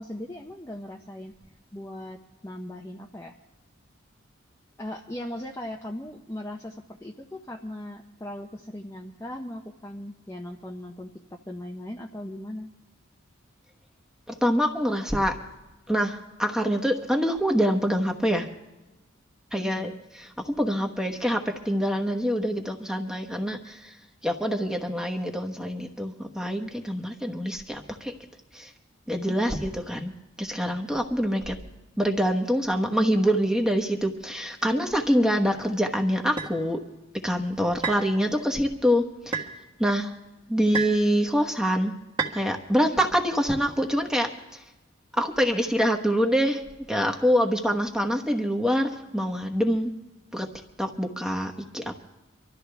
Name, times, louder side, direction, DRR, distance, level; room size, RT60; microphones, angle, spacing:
voice 1, 0.0-1.3 1.7-3.4 4.8-12.7 19.5-19.9 29.3-29.6, left 1 dB, 15° left, 0 dB, 0.6 m, -38 dB
voice 2, 14.4-15.4 15.9-18.5 19.5-19.9 20.2-23.9 24.2-28.1 28.5-28.7 29.1-30.1 30.4-31.5 32.0-36.8 37.2-39.4 39.8-40.1 40.5-41.9 42.3-44.3 45.1-46.6 46.9-49.9 50.3-50.5 50.8-52.0, equal, 5° right, 3 dB, 1.1 m, -25 dB
sound 1, 36.4-36.5 37.8-38.1 39.3-39.5 40.7-41.0 42.2-42.4, right 5 dB, 20° right, 1.5 m, -29 dB
25.0 x 13.0 x 3.4 m, 1.1 s
head